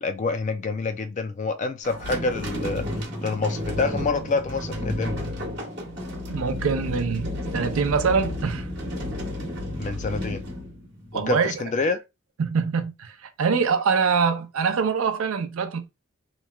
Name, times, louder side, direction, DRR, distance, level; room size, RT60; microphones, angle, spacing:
voice 1, 0.0-2.9 3.2-5.1 9.8-10.4 11.1-12.0, left 3 dB, 35° left, 0.3 m, -27 dB
sound 1, 1.8-11.3, left 1 dB, 50° right, 1.0 m, -32 dB
voice 2, 6.3-8.7 11.1-11.5 12.4-15.9, right 5 dB, 75° right, 0.4 m, -24 dB
3.0 x 2.1 x 2.2 m
head